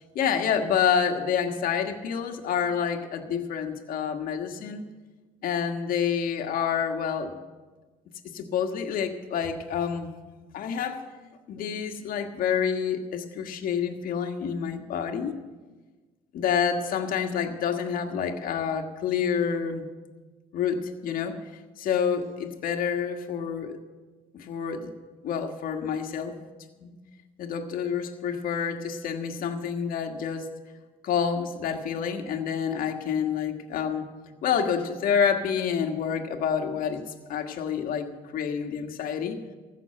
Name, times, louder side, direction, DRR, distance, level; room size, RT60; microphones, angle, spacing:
voice 1, 0.1-4.8 5.4-7.4 8.3-11.0 11.5-15.3 16.3-19.9 20.5-21.4 21.8-23.8 24.3-24.9 25.2-26.3 26.8-27.0 27.4-30.5 31.0-34.1 34.4-37.0 37.3-39.4, left 7 dB, 65° left, 5 dB, 1.5 m, -28 dB
15.5 x 6.5 x 8.9 m, 1.3 s
supercardioid pair, 80°, 15 cm